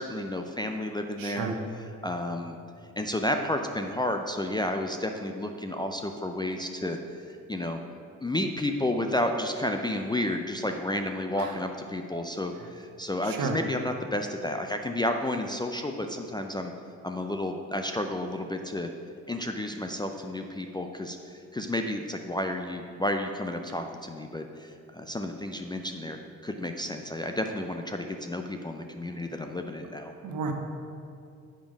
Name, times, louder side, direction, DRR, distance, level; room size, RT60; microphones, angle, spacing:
voice 1, 0.0-1.5 2.0-2.6 3.0-7.8 8.2-16.7 17.0-18.9 19.3-30.1, left 1 dB, 10° left, 4 dB, 0.5 m, -31 dB
voice 2, 1.2-1.6 11.4-11.6 13.2-13.6 30.2-30.5, right 5 dB, 55° right, 4 dB, 1.1 m, -32 dB
8.8 x 5.1 x 5.0 m, 2.5 s
figure-of-eight pair, 40°, 41 cm